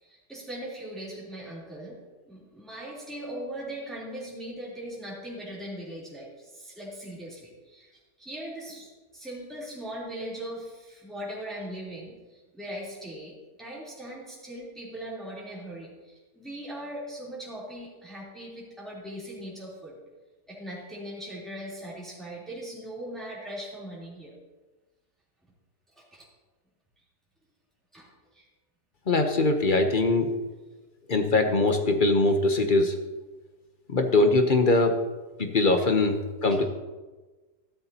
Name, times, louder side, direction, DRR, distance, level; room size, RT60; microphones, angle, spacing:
voice 1, 0.0-2.0 2.3-20.0 20.5-24.3 25.9-26.3 27.9-28.5 36.5-36.6, right 1 dB, ahead, -7 dB, 3.2 m, -40 dB
voice 2, 29.1-30.3 31.1-32.9 33.9-35.0 35.4-36.6, left 2 dB, 40° left, 6 dB, 0.7 m, -22 dB
14.0 x 12.5 x 2.8 m, 1.2 s
omnidirectional pair, 1.8 m